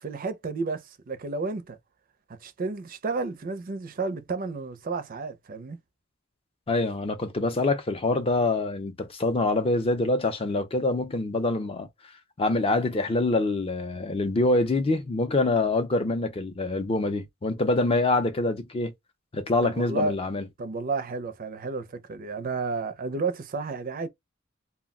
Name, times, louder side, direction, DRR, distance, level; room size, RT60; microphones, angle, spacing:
voice 1, 0.0-1.8 2.3-5.8 19.6-20.1 20.6-24.1, right 3 dB, 45° right, 0.4 m, -31 dB
voice 2, 6.7-11.9 12.4-18.9 19.3-20.4, left 2 dB, 30° left, 0.4 m, -25 dB
2.3 x 2.1 x 3.5 m
head